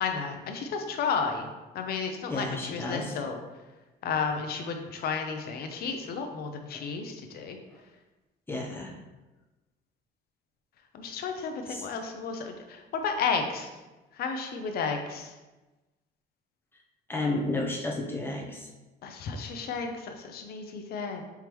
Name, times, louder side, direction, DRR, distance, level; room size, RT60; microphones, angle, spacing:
voice 1, 0.0-1.5 1.7-3.4 4.0-7.6 10.9-13.7 14.1-15.3 19.0-21.2, left 5 dB, 55° left, 5 dB, 0.7 m, -32 dB
voice 2, 2.3-3.1 8.5-8.9 11.7-11.8 17.1-18.7, left 2 dB, 10° left, -1 dB, 0.7 m, -32 dB
4.6 x 3.5 x 3.0 m, 1.1 s
cardioid pair, 130°, 19 cm